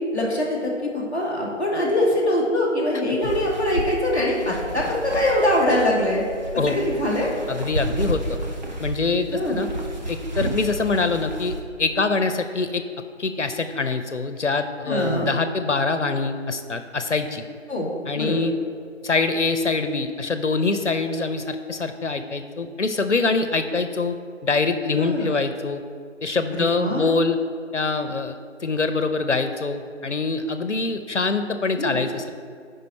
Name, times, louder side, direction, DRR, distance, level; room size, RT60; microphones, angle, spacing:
voice 1, 0.1-6.2 6.6-7.3 9.3-9.6 14.8-15.3 17.7-17.9 18.1-18.4 24.9-25.3 26.5-27.1 31.8-32.0, left 1 dB, 10° right, -12 dB, 1.2 m, -23 dB
sound 1, 3.2-11.6, right 1 dB, 35° right, 1.1 m, -32 dB
voice 2, 7.5-8.2 8.8-9.7 10.1-11.5 11.8-12.8 13.2-17.5 18.1-18.5 19.0-24.2 24.4-25.8 26.2-27.4 27.7-32.3, left 3 dB, 70° left, 9 dB, 0.8 m, -24 dB
12.5 x 5.2 x 4.3 m, 2.2 s
figure-of-eight pair, 160°, 38 cm